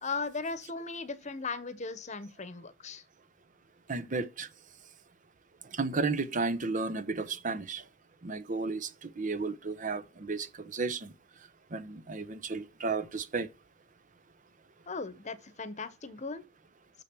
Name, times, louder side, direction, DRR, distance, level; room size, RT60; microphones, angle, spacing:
voice 1, 0.0-3.0 14.9-16.4, left 4 dB, 35° left, 1.0 m, -37 dB
voice 2, 3.9-4.5 5.7-7.8 8.2-11.1 11.7-13.5, right 4 dB, 40° right, 0.8 m, -33 dB
6.9 x 6.4 x 4.6 m
head